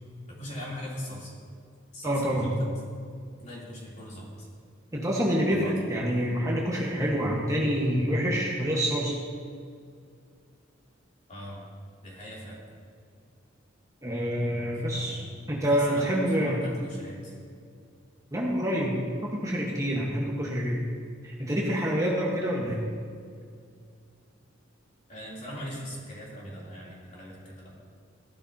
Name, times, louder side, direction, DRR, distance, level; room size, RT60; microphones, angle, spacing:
voice 1, 0.3-1.3 1.9-2.7 3.4-4.5 5.5-5.8 11.3-11.6 12.0-12.6 14.8-15.4 15.7-17.4 25.1-27.7, equal, 40° left, -6 dB, 3.4 m, -40 dB
voice 2, 2.0-2.5 4.9-9.2 14.0-15.2 15.5-16.6 18.3-20.8 21.2-22.8, equal, 15° right, -4 dB, 1.4 m, -27 dB
15.5 x 12.0 x 2.9 m, 2.2 s
head